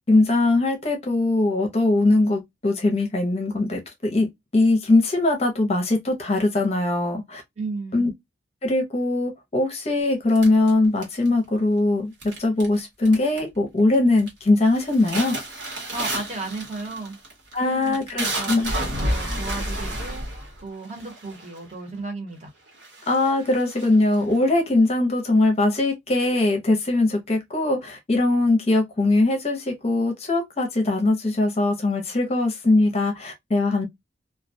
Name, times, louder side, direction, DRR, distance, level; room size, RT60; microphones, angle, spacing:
voice 1, 0.1-7.4 7.9-8.1 8.6-15.4 17.5-18.7 23.1-33.9, left 2 dB, 35° left, 0.6 m, -21 dB
voice 2, 7.6-8.1 15.9-17.2 17.6-20.3 20.6-22.5, right 3 dB, 35° right, 0.9 m, -34 dB
sound 1, 10.4-11.5 12.2-12.8 13.1-13.6 13.9-14.3 14.7-21.7 22.4-22.5 22.8-24.4, right 1 dB, 65° right, 1.1 m, -31 dB
2.3 x 2.1 x 2.6 m
head